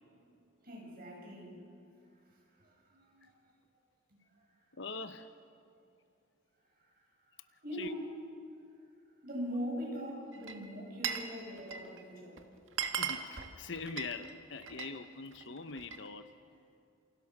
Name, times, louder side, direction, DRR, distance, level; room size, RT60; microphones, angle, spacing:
voice 1, 0.0-0.3 0.6-1.6 2.3-3.3 4.1-4.5 6.9-7.0 7.6-8.1 9.2-12.4, equal, 45° right, -1 dB, 7.1 m, -42 dB
voice 2, 4.7-5.3 7.8-7.9 13.0-16.3, left 4 dB, 60° left, 10 dB, 1.0 m, -43 dB
Glass, 10.3-11.3 11.6-12.0 12.4-12.5 12.7-15.0 15.3-16.1, right 7 dB, 75° right, 1.7 m, -38 dB
28.5 x 27.5 x 6.2 m, 2.4 s
head